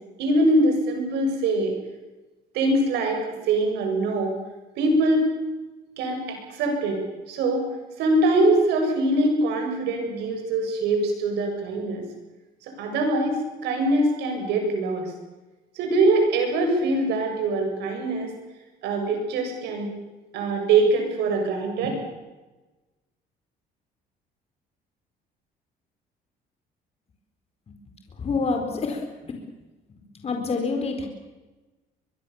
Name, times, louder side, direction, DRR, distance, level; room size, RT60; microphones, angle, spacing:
voice 1, 0.2-1.7 2.5-4.3 4.8-5.2 6.0-7.0 7.3-7.7 8.0-12.1 12.6-13.4 13.6-15.1 15.7-18.3 18.8-19.9 20.3-22.0, right 2 dB, 85° right, 3 dB, 7.6 m, -23 dB
voice 2, 28.2-29.4 30.1-31.1, left 4 dB, 35° left, 4 dB, 4.4 m, -27 dB
23.0 x 23.0 x 7.3 m, 1.2 s
cardioid pair, 110°, 17 cm